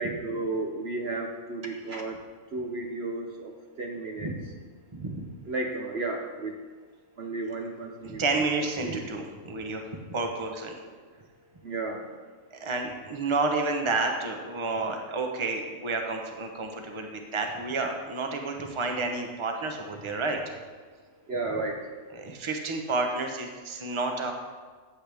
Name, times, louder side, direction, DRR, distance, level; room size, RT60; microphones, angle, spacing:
voice 1, 0.0-2.1 2.5-3.5 3.8-4.3 5.5-6.5 7.2-8.2 8.6-9.0 11.6-12.0 21.3-21.8, right 3 dB, 55° right, 1 dB, 1.0 m, -33 dB
voice 2, 4.9-5.2 8.0-10.8 12.5-20.4 21.5-21.6 22.1-24.3, right 3 dB, 25° right, 3 dB, 0.9 m, -30 dB
14.0 x 7.9 x 3.5 m, 1.4 s
omnidirectional pair, 1.5 m